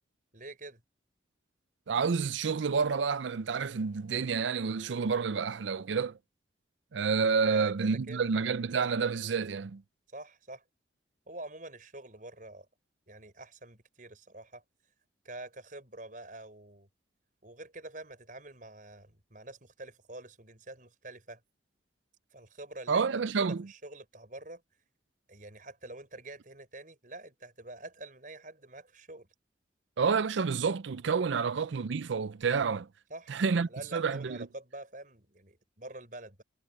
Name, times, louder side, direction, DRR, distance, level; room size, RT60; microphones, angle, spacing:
voice 1, 0.3-0.8 7.4-8.5 10.1-10.6 11.3-12.7 13.1-14.6 15.2-16.9 17.4-21.4 22.3-23.0 23.4-24.6 25.3-29.3 31.3-31.5 33.1-33.3 33.7-36.4, right 2 dB, 45° right, 6.0 m, -46 dB
voice 2, 1.9-6.2 6.9-9.8 22.9-23.7 30.0-32.9 33.3-34.4, right 5 dB, 80° right, 0.5 m, -29 dB
head